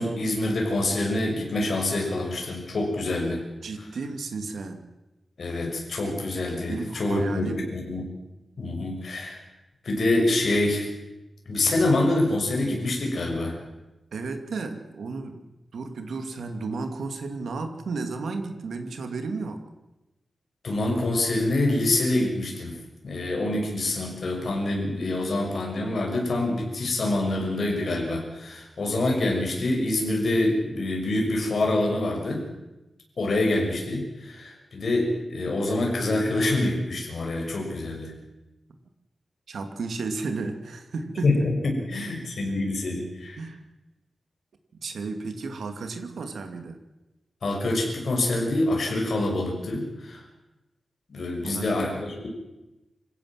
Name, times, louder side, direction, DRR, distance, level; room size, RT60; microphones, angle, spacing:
voice 1, 0.0-3.4 5.4-8.1 8.6-9.4 9.8-10.9 11.5-13.6 20.6-22.7 23.0-32.5 33.2-38.1 41.2-43.4 47.4-50.2 51.1-52.3, left 2 dB, 55° left, 0 dB, 6.5 m, -26 dB
voice 2, 3.6-4.9 6.7-7.6 14.1-15.4 15.7-19.6 39.5-41.3 42.0-42.1 43.4-43.6 44.8-46.8 51.4-51.7, right 4 dB, 90° right, 7 dB, 2.5 m, -33 dB
26.0 x 16.0 x 7.6 m, 1.0 s
wide cardioid pair, 150°, 0 cm